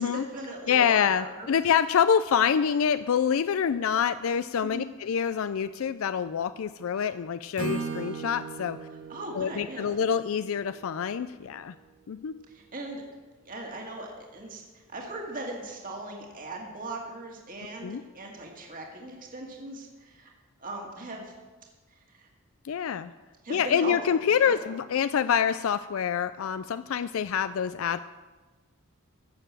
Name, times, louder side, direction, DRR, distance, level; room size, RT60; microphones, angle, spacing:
voice 1, 0.0-1.5 4.6-4.9 8.9-10.0 12.5-13.0 13.5-20.3 20.6-21.3 22.1-22.3 23.4-24.0 24.4-24.8, right 2 dB, 40° right, 0 dB, 2.0 m, -39 dB
voice 2, 0.7-8.8 9.3-11.7 12.1-12.3 17.8-18.0 22.6-23.1 23.5-28.0, left 7 dB, 70° left, 13 dB, 0.4 m, -26 dB
Acoustic guitar / Strum, 7.6-11.5, right 5 dB, 80° right, 1.0 m, -38 dB
15.0 x 6.8 x 7.4 m, 1.3 s
head